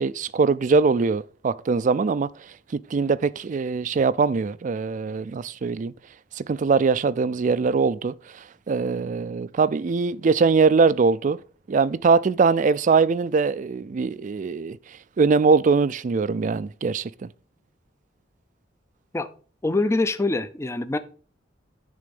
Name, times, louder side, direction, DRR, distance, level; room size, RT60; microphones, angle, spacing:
voice 1, 0.0-2.3 2.7-5.9 6.4-11.4 11.7-14.8 15.2-17.3, right 4 dB, 45° right, 0.4 m, -22 dB
voice 2, 19.6-21.0, left 2 dB, 15° left, 0.4 m, -24 dB
9.9 x 3.8 x 5.3 m
head